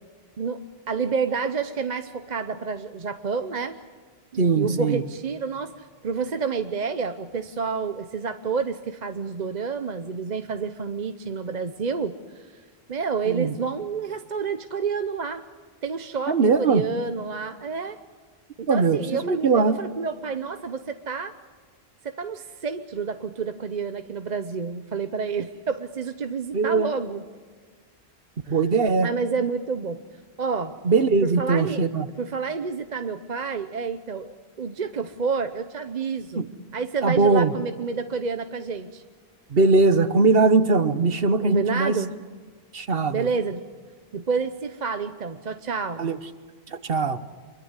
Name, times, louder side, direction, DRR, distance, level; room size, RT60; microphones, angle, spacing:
voice 1, 0.4-3.8 4.3-12.5 12.9-15.4 15.8-18.0 18.6-21.3 22.0-27.2 28.5-28.6 29.0-30.0 30.4-30.8 31.2-31.8 32.2-36.5 36.7-39.0 41.4-42.1 43.1-43.6 44.1-46.1, right 5 dB, 45° right, 9 dB, 0.9 m, -29 dB
voice 2, 4.4-5.0 13.3-13.5 16.3-16.8 18.7-19.8 26.5-26.9 28.5-29.1 30.8-32.1 36.4-36.5 37.0-37.5 39.5-42.0 42.7-43.3 46.0-46.2 46.7-47.2, right 4 dB, 65° right, 12 dB, 1.3 m, -20 dB
26.0 x 23.0 x 8.2 m, 1.5 s
omnidirectional pair, 1.1 m